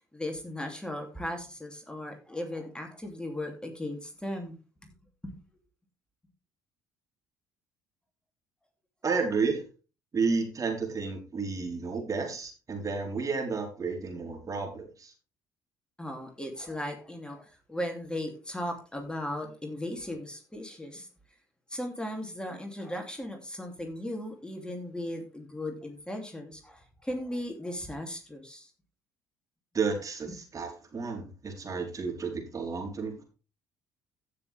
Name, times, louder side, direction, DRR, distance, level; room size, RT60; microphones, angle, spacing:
voice 1, 0.0-4.6 5.2-5.4 16.0-21.1 21.7-28.7 30.3-30.4, left 1 dB, 10° left, 3 dB, 2.9 m, -37 dB
voice 2, 9.0-9.6 10.1-15.1 29.7-33.2, right 4 dB, 35° right, 2 dB, 4.1 m, -31 dB
15.5 x 6.6 x 3.5 m, 0.33 s
hypercardioid pair, 55°, 10 cm